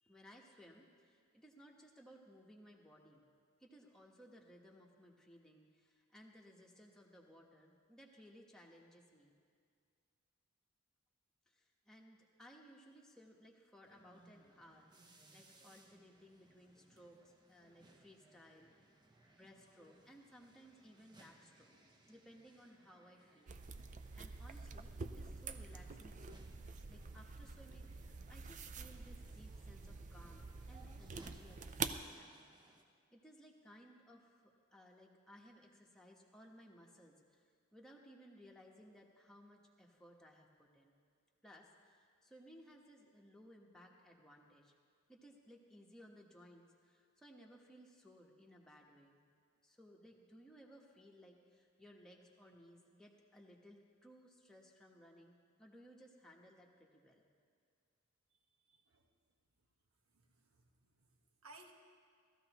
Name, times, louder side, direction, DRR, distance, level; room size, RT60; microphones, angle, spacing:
voice 1, 0.0-3.3 3.6-9.3 11.5-18.7 19.3-21.7 22.1-26.5 26.9-32.5 33.1-37.4 37.7-41.0 41.4-44.7 45.1-49.2 49.6-57.3, equal, 5° left, -2 dB, 1.1 m, -61 dB
sound 1, 13.9-32.8, right 2 dB, 20° right, 0.9 m, -67 dB
sound 2, 23.5-32.0, right 5 dB, 35° right, 0.4 m, -47 dB
voice 2, 58.7-59.1 60.1-61.1 61.4-61.7, right 2 dB, 70° right, 3 dB, 1.3 m, -61 dB
18.0 x 13.5 x 3.0 m, 2.2 s
head